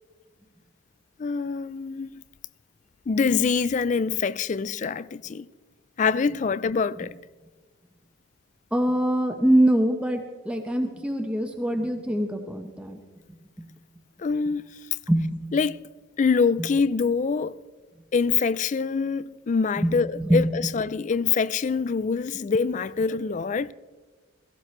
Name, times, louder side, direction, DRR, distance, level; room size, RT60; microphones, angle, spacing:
voice 1, 1.2-2.2 3.1-5.5 6.0-7.2 14.2-14.6 15.5-15.8 16.2-17.5 18.1-23.7, left 5 dB, 35° left, 0.3 m, -25 dB
voice 2, 8.7-13.0 15.1-15.4 19.8-19.9 20.3-20.4, right 1 dB, 5° right, 0.8 m, -23 dB
17.0 x 16.0 x 3.2 m
head